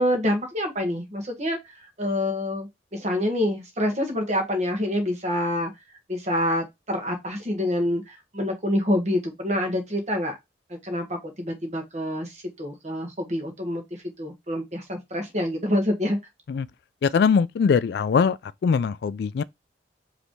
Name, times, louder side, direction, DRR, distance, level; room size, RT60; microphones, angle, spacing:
voice 1, 0.0-5.7 6.1-10.3 10.8-13.8 14.2-16.2, left 1 dB, 40° right, 1.6 m, -27 dB
voice 2, 17.0-18.4 18.6-19.4, left 6 dB, 60° left, 0.3 m, -21 dB
5.1 x 3.3 x 3.1 m
head